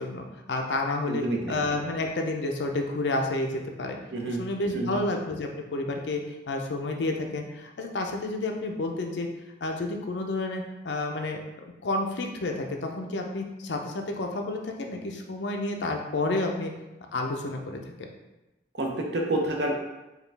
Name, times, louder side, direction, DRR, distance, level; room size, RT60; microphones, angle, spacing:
voice 1, 0.0-4.0 4.4-6.2 6.5-9.3 9.6-11.4 11.8-16.7 17.1-18.1, left 2 dB, 85° left, 2 dB, 0.6 m, -30 dB
voice 2, 1.1-1.6 4.1-4.4 4.7-5.0 18.7-19.8, right 1 dB, 75° right, 0 dB, 0.8 m, -28 dB
4.9 x 2.4 x 3.4 m, 1.0 s
head